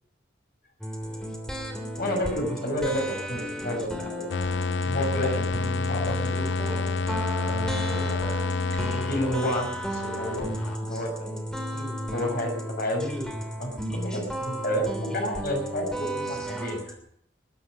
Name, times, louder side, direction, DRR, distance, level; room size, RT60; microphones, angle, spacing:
sound 1, 0.8-17.0, equal, 5° left, 3.0 m, -34 dB
voice 1, 2.0-4.3 4.8-6.1 7.5-8.3 8.9-10.5 10.8-11.8 12.1-13.1 13.6-16.9, left 1 dB, 55° left, 2 dB, 6.4 m, -31 dB
sound 2, 4.3-10.8, left 4 dB, 90° left, 0.6 m, -29 dB
21.0 x 9.9 x 6.6 m, 0.67 s
head